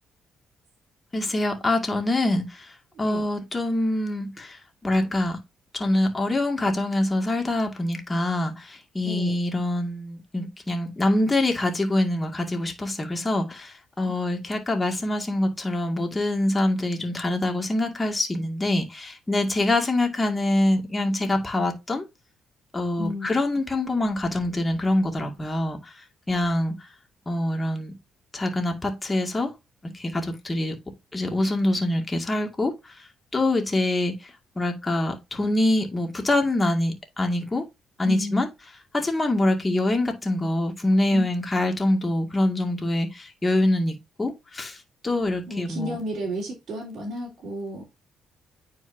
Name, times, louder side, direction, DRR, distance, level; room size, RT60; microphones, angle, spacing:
voice 1, 1.1-2.7 3.0-5.4 5.7-22.0 22.7-25.8 26.3-26.8 27.3-27.9 28.3-29.5 29.8-30.7 31.1-33.0 33.3-34.2 34.6-37.6 38.0-38.5 38.9-44.8 45.0-46.0, left 1 dB, 20° left, 2.1 m, -25 dB
voice 2, 23.0-23.3 38.0-38.4 41.1-41.3 45.5-47.8, equal, 55° right, 3.4 m, -32 dB
9.3 x 4.6 x 2.7 m
cardioid pair, 90°, 0 cm